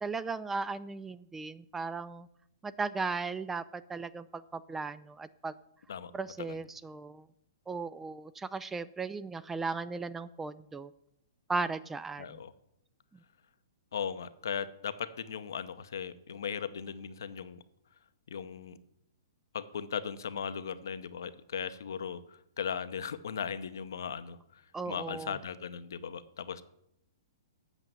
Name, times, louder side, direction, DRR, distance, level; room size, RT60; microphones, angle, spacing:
voice 1, 0.0-2.3 2.6-5.5 6.1-7.3 7.7-10.9 11.5-12.4 24.7-25.4, right 4 dB, 10° right, 15 dB, 0.3 m, -36 dB
voice 2, 12.2-12.5 13.9-17.6 18.3-18.8 19.5-24.4 24.9-26.6, left 7 dB, 65° left, 12 dB, 0.7 m, -38 dB
8.1 x 6.7 x 7.6 m, 0.76 s
figure-of-eight pair, 115°, 2 cm